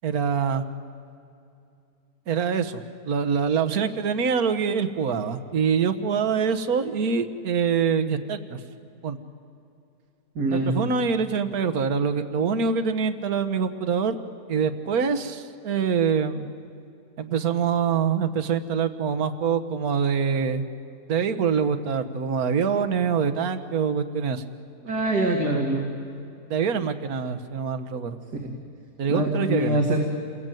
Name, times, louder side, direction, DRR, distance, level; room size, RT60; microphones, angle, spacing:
voice 1, 0.0-0.6 2.3-8.6 9.0-9.2 10.5-14.2 14.5-16.5 17.2-20.6 21.1-24.4 26.5-28.2 29.0-29.8, right 6 dB, 65° right, 8 dB, 1.7 m, -25 dB
voice 2, 10.4-10.7 24.8-25.9 29.1-30.0, right 1 dB, 85° right, 1 dB, 3.1 m, -24 dB
29.0 x 21.5 x 9.2 m, 2.6 s
omnidirectional pair, 1.7 m